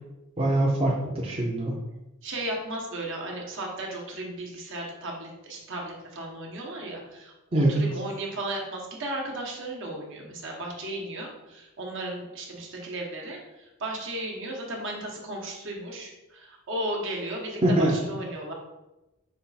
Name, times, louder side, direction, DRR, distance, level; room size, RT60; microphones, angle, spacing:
voice 1, 0.4-1.8 7.5-7.8 17.6-18.0, right 1 dB, 25° right, -3 dB, 0.6 m, -23 dB
voice 2, 2.2-18.5, right 1 dB, 60° right, -1 dB, 1.1 m, -35 dB
5.4 x 2.4 x 4.0 m, 0.99 s
head